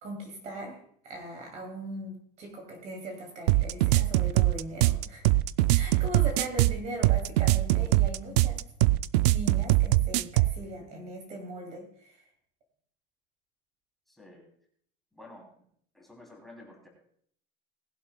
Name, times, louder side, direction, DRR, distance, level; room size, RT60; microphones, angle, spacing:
voice 1, 0.0-5.2 5.7-8.6 9.2-12.3, right 1 dB, 35° right, 3 dB, 2.6 m, -40 dB
sound 1, 3.5-10.6, right 17 dB, 85° right, 0.5 m, -23 dB
voice 2, 14.1-14.4 15.1-15.7 15.9-16.9, left 1 dB, ahead, -1 dB, 3.0 m, -51 dB
19.0 x 11.0 x 2.3 m, 0.63 s
cardioid pair, 170°, 20 cm